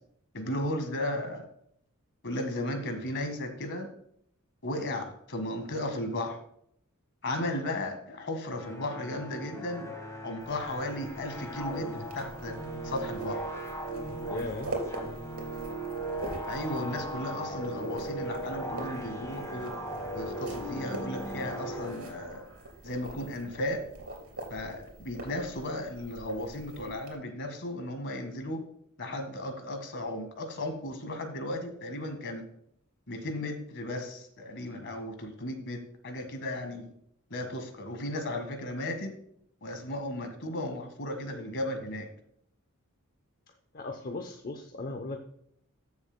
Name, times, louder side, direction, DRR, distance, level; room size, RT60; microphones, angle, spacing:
voice 1, 0.3-1.4 2.2-3.9 4.6-6.4 7.2-9.9 10.2-12.6 12.8-13.5 16.5-19.7 20.1-22.4 22.8-23.8 24.5-28.6 29.0-32.4 33.1-36.9 37.3-39.1 39.6-42.1, left 1 dB, 60° left, 6 dB, 1.7 m, -35 dB
sound 1, 8.5-22.6, right 1 dB, 15° left, 1.6 m, -38 dB
sound 2, 10.4-27.1, right 1 dB, 85° right, 3.2 m, -44 dB
voice 2, 14.3-14.8 16.3-16.4 43.7-45.2, left 2 dB, 45° left, 4 dB, 0.7 m, -37 dB
14.5 x 7.0 x 2.2 m, 0.69 s
head